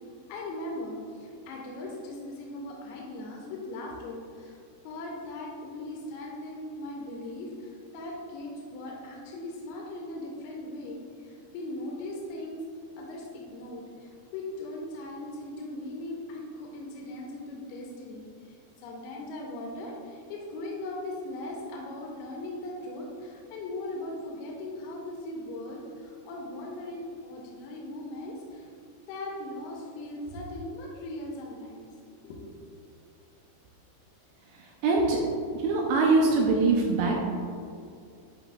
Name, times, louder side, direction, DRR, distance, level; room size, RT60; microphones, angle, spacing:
voice 1, 0.3-4.6 4.8-12.6 13.0-28.7 29.1-31.9 32.2-32.6, left 1 dB, 85° left, -2 dB, 2.6 m, -39 dB
voice 2, 34.8-35.2 35.6-37.1, right 3 dB, 80° right, -1 dB, 2.2 m, -23 dB
10.5 x 4.1 x 2.3 m, 2.4 s
omnidirectional pair, 4.6 m